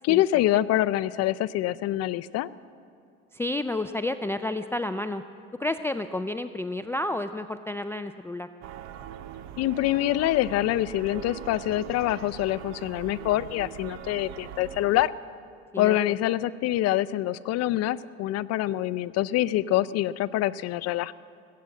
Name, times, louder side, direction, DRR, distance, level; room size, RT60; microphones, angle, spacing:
voice 1, 0.0-2.5 9.6-15.1 15.8-21.1, left 14 dB, 60° left, 17 dB, 0.5 m, -25 dB
voice 2, 3.3-5.2 5.6-8.5 15.7-16.2, left 2 dB, 10° left, 10 dB, 0.3 m, -30 dB
sound 1, 8.6-15.1, right 10 dB, 65° right, 0.8 m, -41 dB
19.5 x 8.6 x 7.6 m, 2.4 s
supercardioid pair, 100°, 29 cm